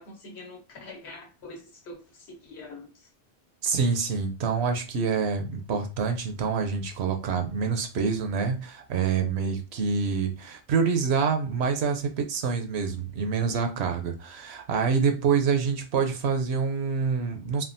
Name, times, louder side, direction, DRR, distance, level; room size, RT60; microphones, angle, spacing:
voice 1, 0.0-3.1, left 2 dB, 75° left, 1.1 m, -44 dB
voice 2, 3.6-17.6, right 5 dB, 75° right, 0.9 m, -26 dB
3.4 x 2.3 x 2.6 m
omnidirectional pair, 1.1 m